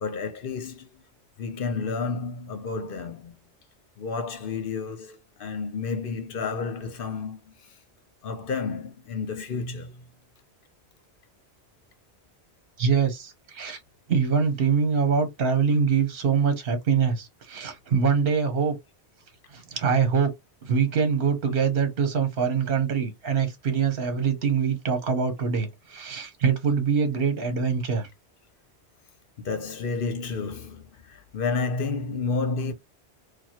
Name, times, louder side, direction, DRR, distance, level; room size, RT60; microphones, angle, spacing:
voice 1, 0.0-1.0 1.4-3.3 4.0-7.8 8.2-10.0 29.4-32.7, left 4 dB, 60° left, 0.9 m, -31 dB
voice 2, 12.8-13.8 14.1-18.7 19.5-20.3 20.6-28.1, right 6 dB, 60° right, 1.1 m, -24 dB
4.5 x 2.3 x 2.8 m
omnidirectional pair, 1.1 m